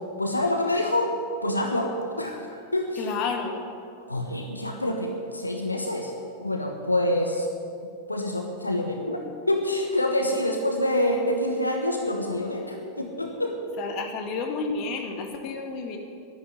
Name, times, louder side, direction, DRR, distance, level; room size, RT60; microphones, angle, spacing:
voice 1, 0.2-1.2 1.4-3.1 4.1-6.1 6.4-7.5 8.1-13.6, left 1 dB, 85° left, 3 dB, 1.3 m, -26 dB
voice 2, 3.0-3.6 13.8-16.0, left 4 dB, 40° left, 4 dB, 2.1 m, -30 dB
11.0 x 11.0 x 9.6 m, 2.5 s
figure-of-eight pair, 90°, 0 cm